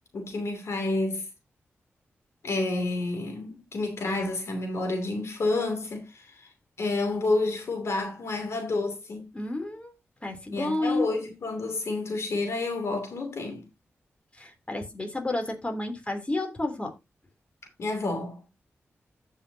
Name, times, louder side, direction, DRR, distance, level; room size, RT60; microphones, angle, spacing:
voice 1, 0.1-1.2 2.4-6.5 6.8-9.3 10.5-13.6 17.8-18.4, left 2 dB, 70° left, 2.8 m, -29 dB
voice 2, 9.3-9.9 10.2-11.1 14.3-16.9, left 2 dB, 25° left, 3.2 m, -30 dB
15.0 x 5.6 x 2.8 m
cardioid pair, 70°, 5 cm